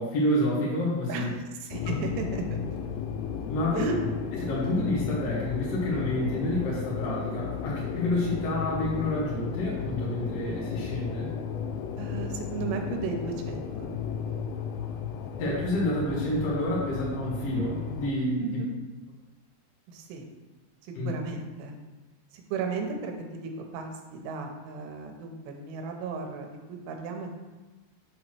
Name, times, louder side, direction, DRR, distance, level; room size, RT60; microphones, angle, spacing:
voice 1, 0.0-1.3 1.9-2.0 3.5-4.0 4.3-11.3 15.4-18.4 20.9-21.1, left 1 dB, 65° left, -6 dB, 1.6 m, -29 dB
voice 2, 1.1-2.4 3.7-3.9 12.0-13.9 18.4-18.7 19.9-20.3 20.8-21.8 22.3-27.3, right 4 dB, 90° right, 3 dB, 2.9 m, -35 dB
sound 1, 1.7-18.1, left 7 dB, 85° left, 2.1 m, -34 dB
7.0 x 3.0 x 5.9 m, 1.2 s
omnidirectional pair, 4.8 m